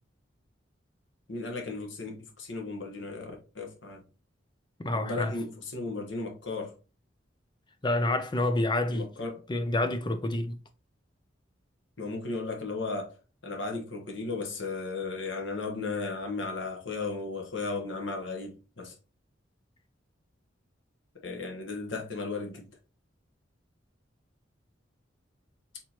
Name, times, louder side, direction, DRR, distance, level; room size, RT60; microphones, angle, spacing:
voice 1, 1.3-4.0 4.9-6.7 8.9-9.4 12.0-13.1 13.4-18.9 21.2-22.7, left 3 dB, 75° left, 1.2 m, -35 dB
voice 2, 4.8-5.3 7.8-9.1 9.5-10.6, left 2 dB, 25° left, 0.6 m, -28 dB
4.5 x 3.7 x 2.9 m
head